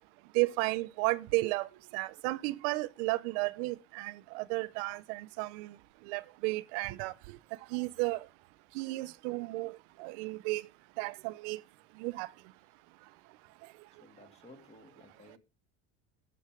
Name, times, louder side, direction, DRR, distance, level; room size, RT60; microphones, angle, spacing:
voice 1, 0.3-1.7 1.9-5.7 6.1-7.1 7.7-8.3 8.7-10.6 11.0-11.6 12.0-12.3, right 22 dB, 90° right, 0.7 m, -33 dB
voice 2, 13.9-15.4, left 2 dB, 20° left, 2.7 m, -56 dB
19.5 x 7.8 x 3.7 m
cardioid pair, 160°, 34 cm